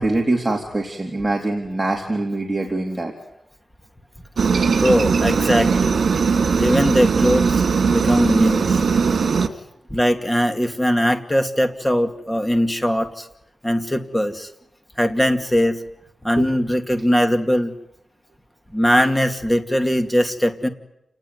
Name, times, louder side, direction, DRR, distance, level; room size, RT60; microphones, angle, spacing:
voice 1, 0.0-3.1 16.4-16.5, right 2 dB, 15° right, 0 dB, 3.7 m, -23 dB
Aircraft, 4.4-9.5, right 5 dB, 75° right, 2.2 m, -19 dB
voice 2, 4.7-6.0 6.6-7.6 7.9-8.8 9.9-13.3 13.6-14.5 15.0-15.8 16.2-17.7 18.7-20.7, equal, 10° left, 6 dB, 2.4 m, -20 dB
29.5 x 19.5 x 9.6 m, 0.82 s
wide cardioid pair, 120°, 0 cm